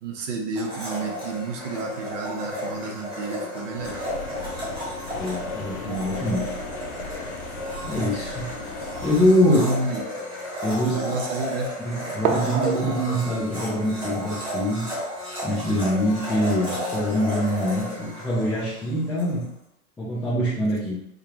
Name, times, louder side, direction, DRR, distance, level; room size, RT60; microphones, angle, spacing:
voice 1, 0.0-4.1 9.4-10.0 10.9-11.7, right 3 dB, 60° right, 3 dB, 0.9 m, -30 dB
Domestic sounds home sounds, 0.5-19.3, equal, 10° right, 1.2 m, -33 dB
sound 1, 3.8-9.4, left 4 dB, 80° left, 0.8 m, -37 dB
voice 2, 5.1-6.5 7.8-8.7 9.0-9.6 10.6-11.0 11.8-14.9 15.4-19.5 20.0-21.0, equal, 5° left, -10 dB, 0.4 m, -24 dB
sound 2, 8.3-9.6 10.3-10.4 12.2-15.3, right 5 dB, 90° right, 0.7 m, -32 dB
5.1 x 2.2 x 2.9 m, 0.77 s
hypercardioid pair, 130°, 43 cm